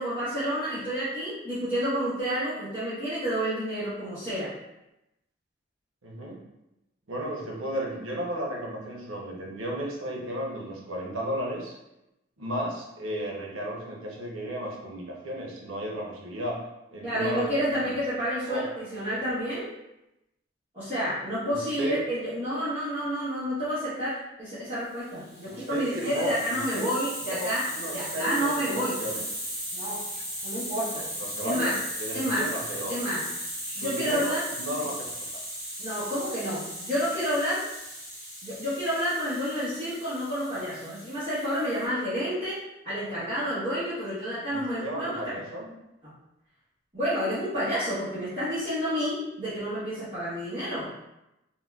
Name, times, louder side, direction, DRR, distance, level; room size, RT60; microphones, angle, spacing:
voice 1, 0.0-4.5 17.0-19.7 20.7-27.6 27.9-29.0 29.7-30.1 30.4-31.1 31.4-31.7 32.1-32.5 32.9-33.2 33.7-34.4 35.8-37.6 38.4-42.6 42.8-45.4 46.0-46.1 46.9-50.9, equal, 30° right, -15 dB, 1.0 m, -29 dB
voice 2, 6.0-6.4 7.1-11.7 12.4-16.6 16.9-18.0 18.5-18.6 21.4-22.0 25.5-26.9 27.2-29.2 31.0-31.7 32.0-33.0 33.7-34.9 44.5-45.7, right 1 dB, 85° right, -2 dB, 0.7 m, -34 dB
Hiss, 25.2-41.9, equal, 15° right, 1.5 m, -37 dB
3.7 x 2.2 x 2.3 m, 0.90 s
head